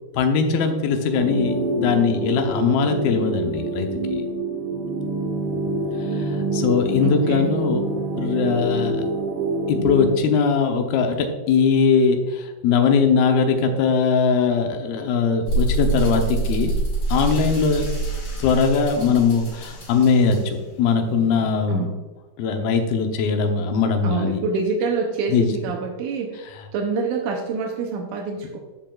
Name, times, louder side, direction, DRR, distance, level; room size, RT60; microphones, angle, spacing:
voice 1, 0.1-4.2 6.1-6.3 6.5-7.8 8.2-9.0 9.7-16.8 17.1-17.9 18.4-21.9 22.4-24.4 25.3-25.5, left 5 dB, 80° left, 5 dB, 2.6 m, -20 dB
sound 1, 1.2-10.2, right 2 dB, 65° right, 2.6 m, -26 dB
voice 2, 7.0-7.5 21.7-22.0 24.0-26.4 26.7-28.6, right 4 dB, 85° right, 2 dB, 1.8 m, -26 dB
sound 2, 15.5-21.6, right 2 dB, 50° left, 2.7 m, -26 dB
14.0 x 5.2 x 2.3 m, 1.2 s
omnidirectional pair, 4.5 m